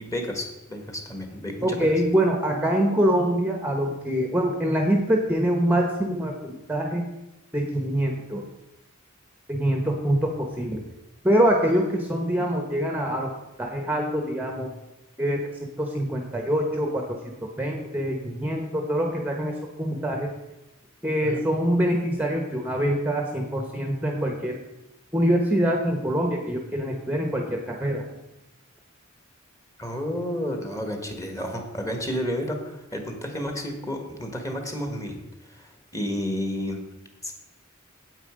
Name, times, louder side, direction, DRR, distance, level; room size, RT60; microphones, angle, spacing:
voice 1, 0.0-1.9 21.2-21.4 29.8-35.2 35.5-36.8 37.2-37.3, equal, 15° left, 4 dB, 1.5 m, -31 dB
voice 2, 1.6-7.0 7.5-8.4 9.5-10.8 11.2-13.3 13.6-14.7 15.2-15.4 15.8-20.3 21.0-24.6 25.1-28.0, equal, 10° right, 2 dB, 1.0 m, -24 dB
9.0 x 8.3 x 5.1 m, 1.0 s
head